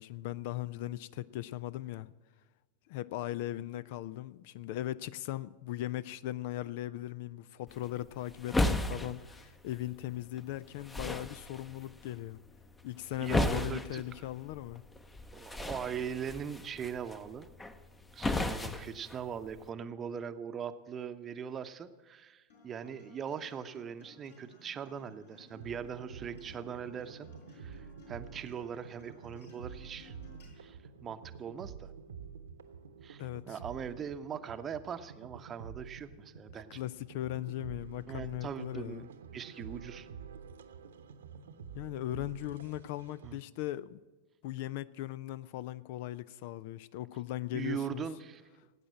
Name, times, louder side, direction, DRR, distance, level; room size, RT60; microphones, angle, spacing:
voice 1, 0.0-2.1 2.9-12.4 12.8-14.8 33.2-33.6 36.5-39.1 41.7-44.0 44.4-48.1, left 14 dB, 50° left, 0.4 m, -38 dB
sound 1, 7.7-19.7, left 2 dB, 10° left, 0.8 m, -36 dB
voice 2, 13.2-14.0 15.3-17.5 18.1-30.1 30.6-31.9 33.0-36.8 38.1-40.1 43.2-43.4 47.5-48.4, right 7 dB, 25° right, 0.8 m, -41 dB
Acoustic guitar, 22.5-30.5, left 3 dB, 70° left, 5.5 m, -58 dB
sound 2, 25.5-43.4, right 6 dB, 65° right, 1.0 m, -49 dB
18.0 x 8.9 x 7.5 m
figure-of-eight pair, 90°, 0 cm